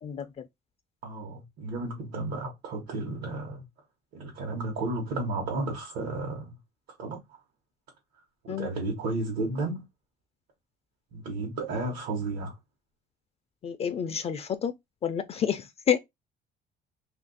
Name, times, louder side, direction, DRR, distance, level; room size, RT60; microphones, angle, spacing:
voice 1, 0.0-0.5 8.5-8.7 13.6-14.7 15.0-16.0, left 8 dB, 35° left, 0.4 m, -29 dB
voice 2, 1.0-3.6 4.1-6.5 7.0-7.2 8.4-9.8 11.1-12.6, right 2 dB, 80° right, 1.1 m, -33 dB
2.7 x 2.5 x 3.9 m
cardioid pair, 130°, 17 cm